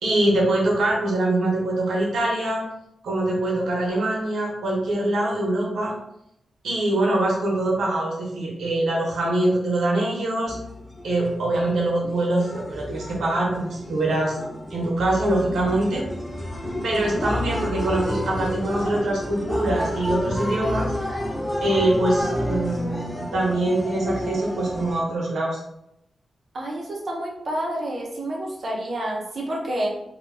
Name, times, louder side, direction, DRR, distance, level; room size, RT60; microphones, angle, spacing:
voice 1, 0.0-2.6 3.0-5.9 6.6-10.6 11.0-14.4 14.7-16.0 16.8-20.9 21.6-25.6, right 1 dB, 90° right, -2 dB, 0.7 m, -23 dB
sound 1, 10.5-25.0, equal, 10° left, 0.4 m, -30 dB
voice 2, 26.5-29.9, right 1 dB, 45° right, -2 dB, 0.6 m, -29 dB
2.2 x 2.1 x 3.2 m, 0.82 s
wide cardioid pair, 150°, 0 cm